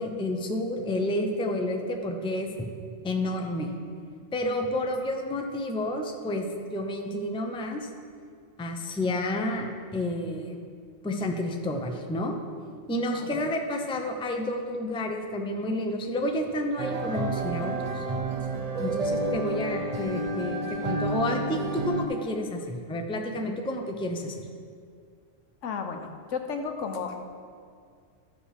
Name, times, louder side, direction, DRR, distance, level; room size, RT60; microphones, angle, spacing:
voice 1, 0.0-2.7 3.0-3.7 4.3-7.9 8.6-10.6 11.0-12.4 12.9-18.0 18.8-24.4, left 1 dB, 5° left, 3 dB, 0.5 m, -30 dB
sound 1, 16.8-22.1, right 2 dB, 40° right, 0.6 m, -30 dB
voice 2, 25.6-27.2, left 5 dB, 75° left, 5 dB, 1.1 m, -33 dB
13.0 x 5.2 x 5.0 m, 2.2 s
omnidirectional pair, 1.3 m